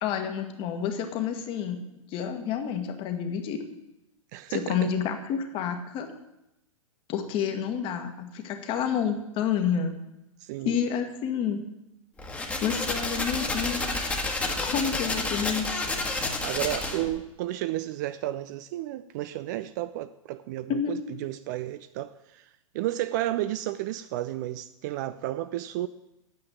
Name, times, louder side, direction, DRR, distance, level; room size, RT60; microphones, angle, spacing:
voice 1, 0.0-3.6 4.5-6.1 7.1-9.9 10.6-11.6 12.6-14.0 14.6-15.8 20.7-21.0, left 7 dB, 30° left, 1.5 m, -29 dB
voice 2, 4.3-4.9 10.4-10.8 16.4-22.5 22.7-25.9, right 14 dB, 35° right, 0.4 m, -32 dB
sound 1, 12.2-17.2, left 2 dB, 10° left, 1.5 m, -30 dB
9.0 x 7.5 x 9.0 m
figure-of-eight pair, 105°, 17 cm